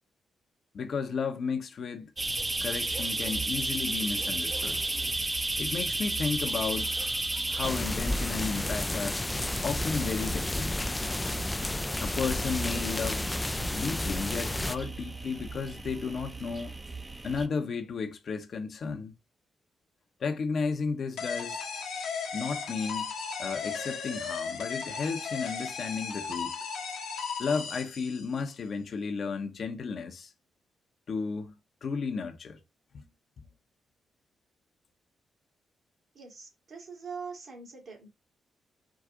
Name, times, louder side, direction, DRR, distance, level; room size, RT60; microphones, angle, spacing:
voice 1, 0.7-2.1 2.6-4.8 5.6-6.9 7.5-9.2 9.6-10.9 12.0-13.3 13.7-16.7 17.2-19.1 20.2-21.6 22.3-23.1 23.4-26.5 27.4-30.3 31.1-31.5 31.8-32.6 32.9-33.0, left 5 dB, 60° left, 0.8 m, -33 dB
sound 1, 2.2-17.5, right 2 dB, 25° right, 0.8 m, -34 dB
sound 2, 7.6-14.8, left 1 dB, 20° left, 0.4 m, -31 dB
sound 3, 21.2-28.5, left 5 dB, 80° left, 1.1 m, -36 dB
voice 2, 36.1-38.1, right 5 dB, 60° right, 2.4 m, -43 dB
4.8 x 2.4 x 3.8 m
supercardioid pair, 50°, 0 cm